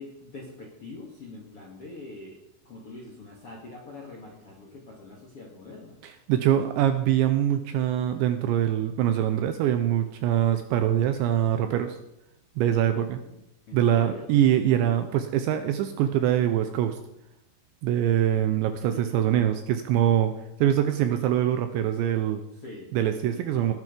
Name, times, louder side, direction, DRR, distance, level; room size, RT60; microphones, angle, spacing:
voice 1, 0.0-2.4 2.7-6.0 12.9-13.4 13.7-14.3 14.6-15.1 18.6-19.4 22.5-22.9 23.3-23.7, left 3 dB, 50° left, -1 dB, 1.7 m, -44 dB
voice 2, 6.3-12.0 12.6-13.2 13.7-17.0 17.8-20.3 20.6-22.4 22.9-23.7, right 11 dB, 80° right, 9 dB, 2.7 m, -23 dB
20.0 x 9.3 x 5.2 m, 0.84 s
omnidirectional pair, 5.9 m